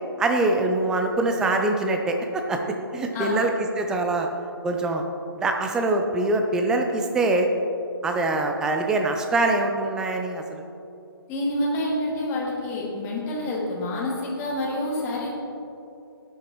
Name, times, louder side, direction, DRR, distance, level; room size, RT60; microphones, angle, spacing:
voice 1, 0.2-4.3 4.6-5.0 5.4-7.5 8.0-10.6, right 2 dB, 5° right, 3 dB, 0.5 m, -24 dB
voice 2, 11.3-15.3, left 1 dB, 15° left, -5 dB, 2.2 m, -27 dB
16.5 x 10.5 x 3.1 m, 2.7 s
figure-of-eight pair, 150°, 13 cm